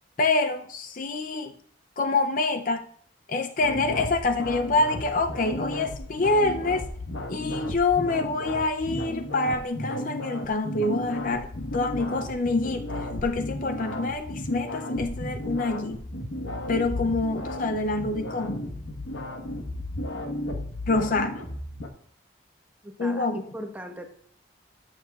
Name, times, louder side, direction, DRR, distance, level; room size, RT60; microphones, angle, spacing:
voice 1, 0.2-1.5 2.0-2.9 3.3-6.9 7.3-16.0 16.7-18.7 20.9-21.4 23.0-23.4, left 3 dB, 45° left, 8 dB, 0.4 m, -26 dB
sound 1, 3.6-21.9, left 1 dB, 80° left, 1.2 m, -34 dB
voice 2, 22.8-24.1, equal, 10° right, 3 dB, 0.9 m, -39 dB
13.0 x 6.5 x 2.3 m, 0.63 s
head